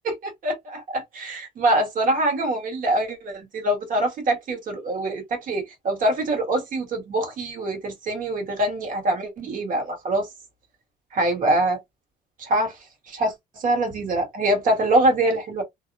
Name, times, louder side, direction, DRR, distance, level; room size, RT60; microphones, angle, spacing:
voice 1, 0.0-10.3 11.1-11.8 12.4-12.7 13.1-15.6, right 1 dB, 55° right, 1.4 m, -24 dB
2.7 x 2.1 x 2.5 m
cardioid pair, 110°, 17 cm